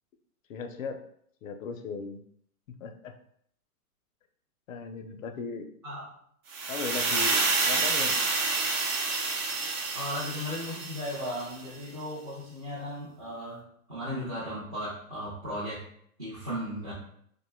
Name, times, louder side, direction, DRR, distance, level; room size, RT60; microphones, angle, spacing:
voice 1, 0.5-1.0 1.4-2.2 2.7-3.1 4.7-5.7 6.7-8.2, left 5 dB, 60° left, 6 dB, 0.5 m, -37 dB
sound 1, 6.5-11.5, right 3 dB, 55° right, 0.7 m, -28 dB
voice 2, 9.9-13.6 13.9-15.9 16.2-16.9, equal, 30° right, -10 dB, 0.4 m, -36 dB
2.5 x 2.2 x 3.1 m, 0.67 s
hypercardioid pair, 150°, 46 cm